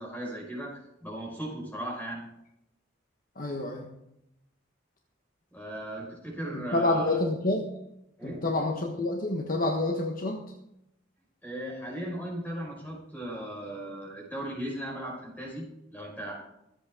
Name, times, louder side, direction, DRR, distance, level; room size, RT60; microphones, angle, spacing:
voice 1, 0.0-2.2 5.5-7.2 8.2-8.4 11.4-15.6 15.9-16.3, right 1 dB, 10° left, -3 dB, 5.4 m, -37 dB
voice 2, 3.4-3.9 6.5-7.7 8.2-10.4, left 2 dB, 45° left, 2 dB, 1.4 m, -28 dB
24.5 x 8.5 x 3.7 m, 0.83 s
head